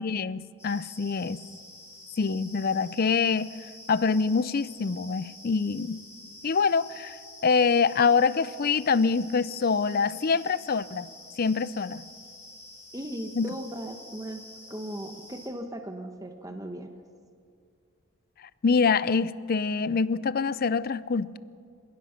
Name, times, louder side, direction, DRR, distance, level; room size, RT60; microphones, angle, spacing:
voice 1, 0.0-1.4 2.2-3.5 3.9-6.0 6.4-7.2 7.4-11.1 11.4-12.1 13.4-13.5 18.6-21.4, left 5 dB, 40° left, 0.4 m, -25 dB
sound 1, 0.6-15.5, left 2 dB, 10° left, 3.6 m, -48 dB
voice 2, 12.9-14.4 14.7-16.9, right 1 dB, 15° right, 0.9 m, -37 dB
27.0 x 16.5 x 5.8 m
head